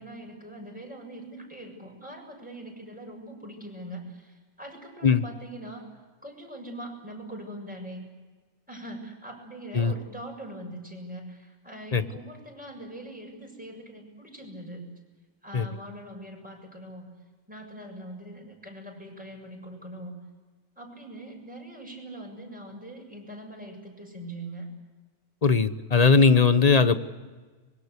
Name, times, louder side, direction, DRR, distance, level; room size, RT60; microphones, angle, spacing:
voice 1, 0.0-5.9 6.2-8.0 8.7-14.8 15.4-17.1 17.5-20.2 20.8-24.7, right 1 dB, 5° right, 0 dB, 7.2 m, -42 dB
voice 2, 25.4-27.0, left 5 dB, 30° left, 11 dB, 1.0 m, -19 dB
25.5 x 23.0 x 8.2 m, 1.3 s
omnidirectional pair, 1.4 m